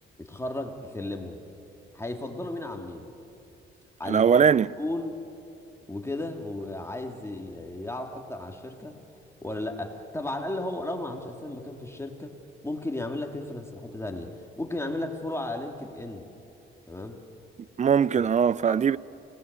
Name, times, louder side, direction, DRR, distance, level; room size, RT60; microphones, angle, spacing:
voice 1, 0.2-1.4 1.9-3.1 4.0-5.2 5.9-9.0 9.4-12.4 12.6-16.3 16.9-17.2 18.2-18.3 18.7-18.8, left 1 dB, 10° left, 2.7 m, -34 dB
voice 2, 4.1-4.7 17.8-19.0, right 7 dB, 35° right, 0.5 m, -21 dB
29.0 x 19.0 x 8.2 m
cardioid pair, 85°, 21 cm